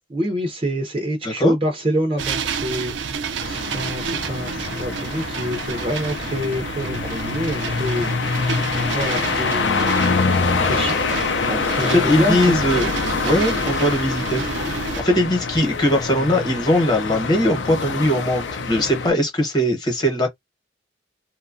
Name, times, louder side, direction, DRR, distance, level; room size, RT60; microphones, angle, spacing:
voice 1, 0.1-10.1 10.6-11.0 11.5-12.6 14.6-14.7, equal, 30° right, 0.5 m, -27 dB
voice 2, 1.2-1.5 11.9-12.9 13.2-14.7 15.0-20.3, equal, 20° left, 0.9 m, -20 dB
sound 1, 2.2-15.0, right 5 dB, 80° right, 0.4 m, -30 dB
sound 2, 3.4-19.1, left 4 dB, 80° left, 0.5 m, -25 dB
2.8 x 2.2 x 2.5 m
head